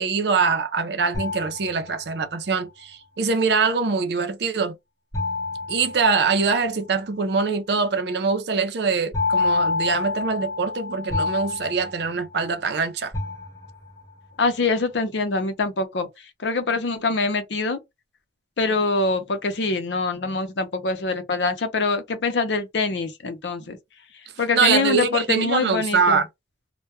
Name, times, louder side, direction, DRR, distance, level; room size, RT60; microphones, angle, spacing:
voice 1, 0.0-4.8 5.7-13.1 24.5-26.3, right 5 dB, 65° right, 0.5 m, -23 dB
sound 1, 1.1-2.4 5.1-6.8 9.1-12.7 13.1-14.1, left 3 dB, 20° left, 0.8 m, -28 dB
voice 2, 14.4-16.1 16.4-17.8 18.6-23.8 24.4-26.2, left 3 dB, 80° left, 0.6 m, -24 dB
2.2 x 2.1 x 2.8 m
head